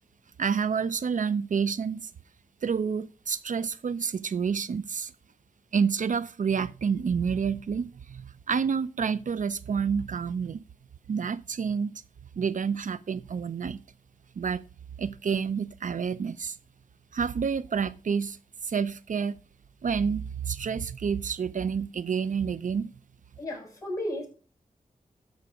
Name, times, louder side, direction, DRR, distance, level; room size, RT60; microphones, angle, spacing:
voice 1, 0.4-2.1 2.6-5.1 5.7-10.6 11.1-12.0 12.4-13.8 14.4-14.6 15.0-16.6 17.1-18.4 18.6-19.4 19.8-22.9, right 6 dB, 65° right, 0.5 m, -29 dB
voice 2, 23.4-24.3, left 1 dB, 20° left, 6.6 m, -33 dB
13.0 x 5.6 x 4.9 m
wide cardioid pair, 70°, 14 cm